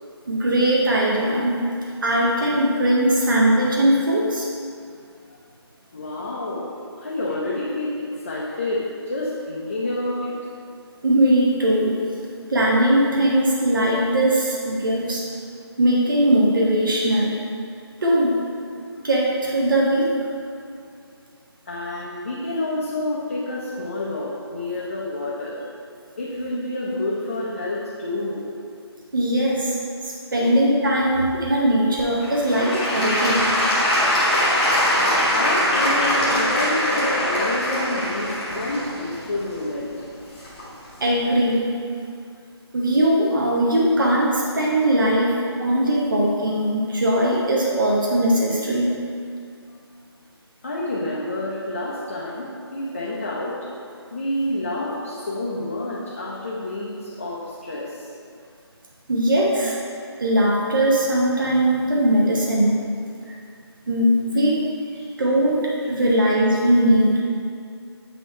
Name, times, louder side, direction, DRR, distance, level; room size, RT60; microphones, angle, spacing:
voice 1, 0.3-1.6 2.0-4.5 11.0-12.0 12.5-15.3 15.8-17.4 18.0-18.4 19.0-20.1 29.1-29.8 30.0-33.6 41.0-41.7 42.7-49.0 59.1-59.7 60.2-62.8 63.9-64.6 65.2-67.2, right 1 dB, 50° right, -4 dB, 0.9 m, -20 dB
voice 2, 5.9-6.7 7.0-10.3 21.7-25.6 26.2-28.4 30.4-30.5 31.3-31.4 35.3-39.9 50.6-53.6 54.1-58.1 65.0-65.1, left 1 dB, 30° left, -6 dB, 0.6 m, -28 dB
Applause / Crowd, 32.0-40.9 41.5-41.6, left 1 dB, 15° left, 1.0 m, -22 dB
8.3 x 2.9 x 4.3 m, 2.4 s
figure-of-eight pair, 170°, 14 cm